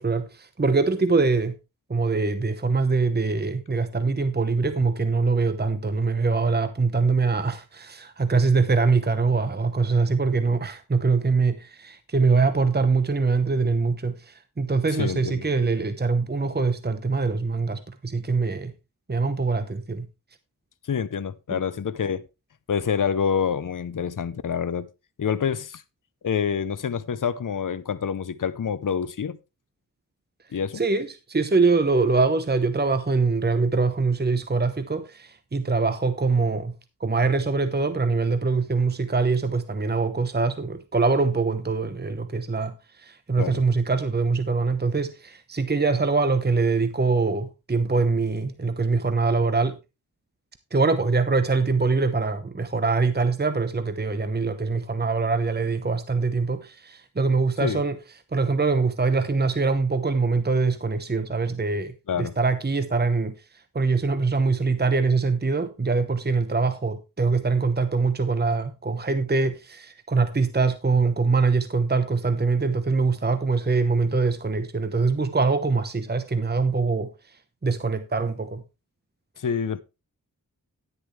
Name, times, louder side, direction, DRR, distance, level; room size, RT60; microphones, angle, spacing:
voice 1, 0.0-1.6 1.9-18.7 19.1-20.1 30.7-36.7 37.0-49.8 50.7-58.0 58.3-63.3 63.7-77.1 77.6-78.6, right 4 dB, 30° right, 1.0 m, -23 dB
voice 2, 15.0-15.4 20.9-22.2 22.7-24.9 25.2-25.8 26.2-29.4 30.5-30.8 43.4-43.6 57.6-57.8 62.1-62.3 79.4-79.8, left 7 dB, 65° left, 0.7 m, -27 dB
11.0 x 9.9 x 3.2 m
wide cardioid pair, 60°, 34 cm